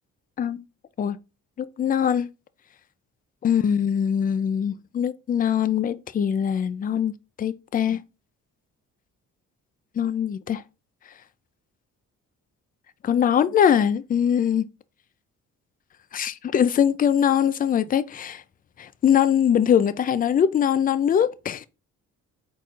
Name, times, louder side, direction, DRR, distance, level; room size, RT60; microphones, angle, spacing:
voice 1, 1.6-2.3 3.4-7.1 7.4-8.0 10.0-10.6 13.0-14.7 16.1-18.4 18.8-21.6, left 8 dB, 30° left, 0.4 m, -22 dB
4.3 x 4.0 x 2.4 m
cardioid pair, 90°, 30 cm